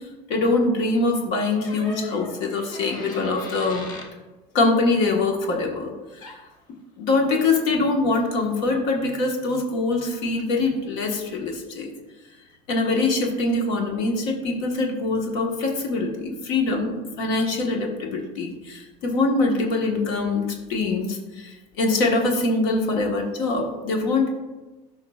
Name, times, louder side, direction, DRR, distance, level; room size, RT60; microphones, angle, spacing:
voice 1, 0.3-3.8 4.5-5.9 6.2-6.3 7.0-11.9 12.7-24.4, left 3 dB, 65° left, 2 dB, 1.4 m, -23 dB
sound 1, 1.6-4.1 6.2-6.4, left 1 dB, 25° left, 1.0 m, -39 dB
13.0 x 5.7 x 2.4 m, 1.1 s
cardioid pair, 180°, 15 cm